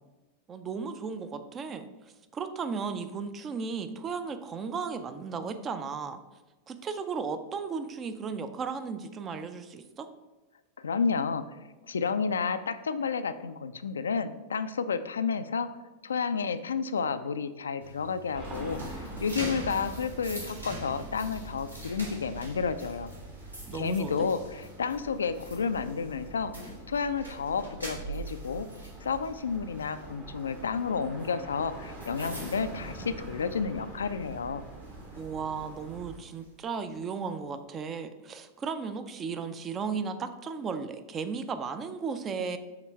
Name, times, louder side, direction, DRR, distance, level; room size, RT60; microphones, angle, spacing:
voice 1, 0.5-1.9 2.3-6.2 6.7-10.1 23.6-24.3 35.2-42.6, right 5 dB, 25° right, 10 dB, 0.5 m, -35 dB
voice 2, 10.8-11.4 11.9-15.7 16.0-23.1 23.7-26.5 26.9-28.7 29.0-34.6, left 5 dB, 70° left, 11 dB, 0.3 m, -31 dB
sound 1, 17.8-33.7 34.1-34.3 34.8-36.5, equal, 85° right, 1.4 m, -44 dB
sound 2, 18.3-36.2, right 2 dB, 40° right, 1.2 m, -45 dB
5.8 x 3.7 x 4.4 m, 1.2 s
figure-of-eight pair, 90°, 0 cm